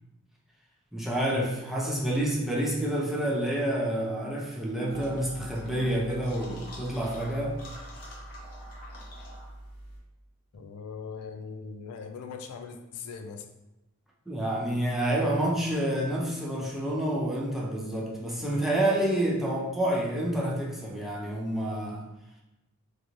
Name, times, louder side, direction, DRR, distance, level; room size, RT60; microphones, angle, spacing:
voice 1, 0.9-7.6 14.3-22.0, right 1 dB, ahead, -3 dB, 0.4 m, -28 dB
sound 1, 4.9-10.0, equal, 45° left, 0.6 m, -43 dB
voice 2, 10.5-13.5, left 5 dB, 80° left, 9 dB, 0.3 m, -40 dB
2.4 x 2.2 x 3.0 m, 0.97 s
head